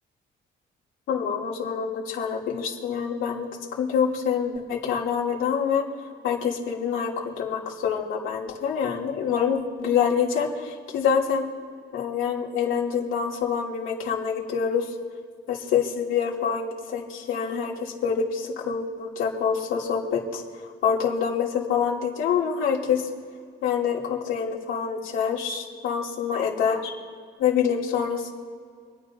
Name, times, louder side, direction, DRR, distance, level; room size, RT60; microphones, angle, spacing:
voice 1, 1.1-3.5 3.8-5.8 6.2-11.4 11.9-14.8 15.5-20.4 20.8-23.0 23.6-26.9 27.4-28.3, left 7 dB, 85° left, -2 dB, 2.7 m, -26 dB
27.5 x 10.0 x 2.7 m, 2.1 s
cardioid pair, 90°, 20 cm